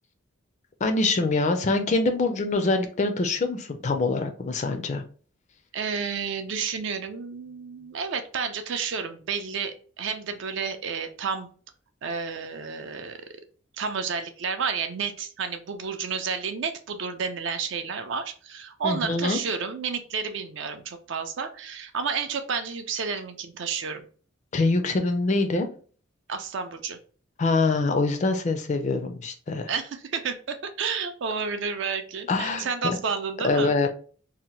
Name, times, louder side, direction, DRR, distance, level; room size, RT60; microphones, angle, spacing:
voice 1, 0.8-5.0 18.8-19.4 24.5-25.7 27.4-29.7 32.3-33.0 33.4-33.9, left 3 dB, 35° left, 6 dB, 0.4 m, -24 dB
voice 2, 5.7-11.5 12.0-13.2 13.8-24.0 26.3-27.0 29.7-33.7, right 5 dB, 60° right, 8 dB, 0.4 m, -31 dB
2.7 x 2.1 x 3.0 m, 0.41 s
head